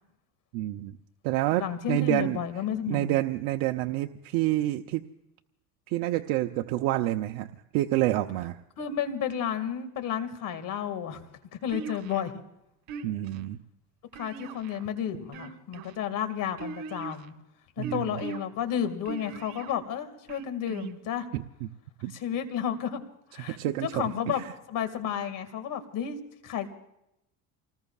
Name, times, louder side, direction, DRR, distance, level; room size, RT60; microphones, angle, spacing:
voice 1, 0.5-1.0 1.2-2.4 2.9-5.0 5.9-7.5 7.7-8.6 13.0-13.6 17.8-18.1 21.3-21.7 22.0-22.1 23.4-24.0 24.3-24.4, right 16 dB, 85° right, 4 dB, 0.7 m, -28 dB
voice 2, 1.6-3.1 8.8-11.2 11.5-12.3 14.1-17.3 17.8-21.3 22.1-23.0 23.3-26.2 26.4-26.7, left 9 dB, 60° left, 10 dB, 2.1 m, -32 dB
sound 1, 11.7-12.3 12.9-13.4 14.1-14.9 15.3-15.9 16.6-17.3 17.8-18.4 19.1-19.7 20.3-20.9, right 6 dB, 70° right, 2.1 m, -39 dB
29.5 x 19.5 x 2.4 m, 0.84 s
cardioid pair, 120°, 36 cm